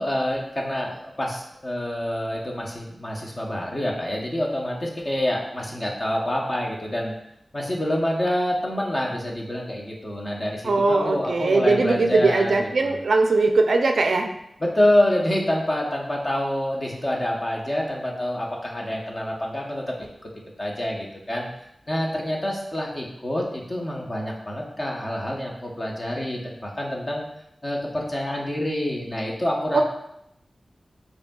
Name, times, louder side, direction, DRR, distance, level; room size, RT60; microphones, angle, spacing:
voice 1, 0.0-7.1 7.5-13.0 14.6-20.3 20.6-21.5 21.9-27.2 27.6-29.8, left 1 dB, 30° left, -2 dB, 0.8 m, -27 dB
voice 2, 10.6-14.3 29.7-29.8, right 3 dB, 75° right, 4 dB, 0.4 m, -20 dB
5.2 x 2.7 x 2.3 m, 0.78 s
wide cardioid pair, 100°, 0 cm